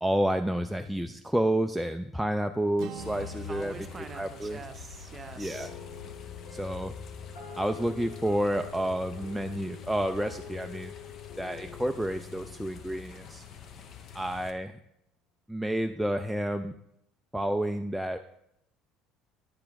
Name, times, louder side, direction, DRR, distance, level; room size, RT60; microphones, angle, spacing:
voice 1, 0.0-3.7 4.1-4.6 5.4-5.7 6.5-6.9 7.6-10.9 11.4-13.4 14.1-14.8 15.5-16.8 17.3-18.2, right 1 dB, ahead, 5 dB, 0.3 m, -30 dB
Acoustic guitar, 2.8-6.7, right 8 dB, 65° right, 0.6 m, -47 dB
sound 1, 3.0-14.5, left 8 dB, 50° left, 0.6 m, -45 dB
voice 2, 3.5-5.8, right 5 dB, 25° right, 8 dB, 0.7 m, -44 dB
sound 2, 5.5-14.0, left 6 dB, 80° left, 2.6 m, -47 dB
9.5 x 5.0 x 3.5 m, 0.77 s
supercardioid pair, 110°, 0 cm